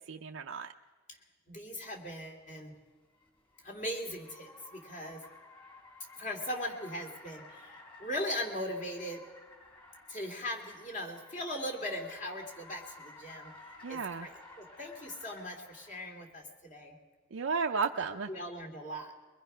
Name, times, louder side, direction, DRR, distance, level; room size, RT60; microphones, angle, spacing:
voice 1, 0.1-0.7 13.8-14.3 17.3-18.3, right 5 dB, 85° right, 3 dB, 0.6 m, -33 dB
voice 2, 1.5-2.8 3.6-5.2 6.2-9.2 10.1-13.5 13.9-17.0 18.3-19.1, left 1 dB, 40° left, 2 dB, 2.8 m, -39 dB
Car, 2.3-16.2, left 2 dB, 25° left, 3.7 m, -54 dB
23.0 x 21.0 x 5.6 m, 1.4 s
head